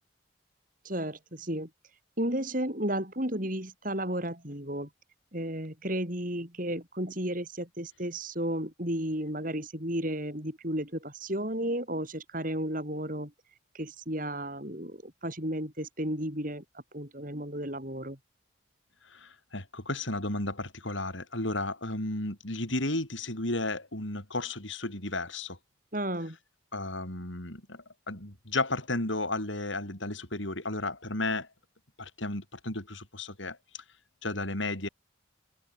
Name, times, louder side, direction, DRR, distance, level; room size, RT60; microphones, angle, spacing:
voice 1, 0.9-1.7 2.2-4.9 5.3-13.3 13.7-16.6 16.9-18.2 25.9-26.4, right 1 dB, 45° right, 6.9 m, -33 dB
voice 2, 19.1-25.6 26.7-31.5 32.0-33.6 34.2-34.9, left 2 dB, 75° left, 7.0 m, -33 dB
head